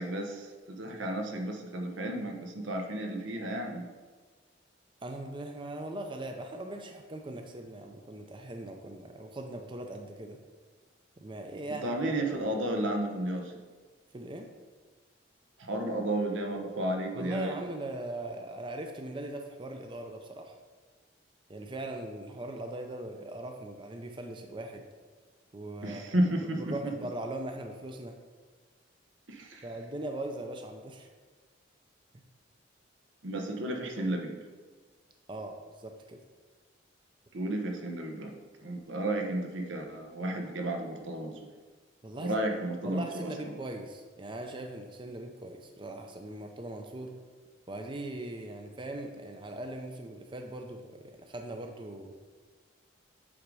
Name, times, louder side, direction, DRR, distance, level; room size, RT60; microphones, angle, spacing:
voice 1, 0.0-3.8 11.8-13.5 15.6-17.6 25.8-26.9 29.3-29.6 33.2-34.4 37.3-38.3 38.6-41.3 42.2-43.3, right 1 dB, 85° right, 3 dB, 1.0 m, -32 dB
voice 2, 5.0-10.4 11.2-12.0 14.1-14.5 17.1-20.5 21.5-24.8 25.5-26.1 26.6-28.2 29.6-31.1 35.3-36.2 42.0-42.4 42.8-47.2 47.7-52.1, right 1 dB, 25° right, 4 dB, 0.5 m, -40 dB
8.5 x 3.8 x 4.8 m, 1.5 s
head